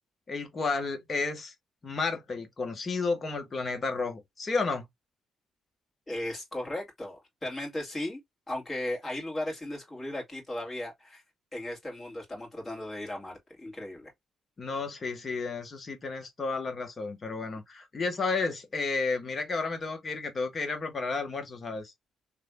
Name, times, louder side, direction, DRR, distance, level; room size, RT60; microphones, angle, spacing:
voice 1, 0.3-1.5 1.8-4.8 14.6-21.9, left 4 dB, 35° left, 1.3 m, -32 dB
voice 2, 6.1-8.2 8.5-11.2 11.5-14.1, left 1 dB, 20° left, 2.5 m, -36 dB
3.4 x 3.3 x 2.2 m
cardioid pair, 90°, 0 cm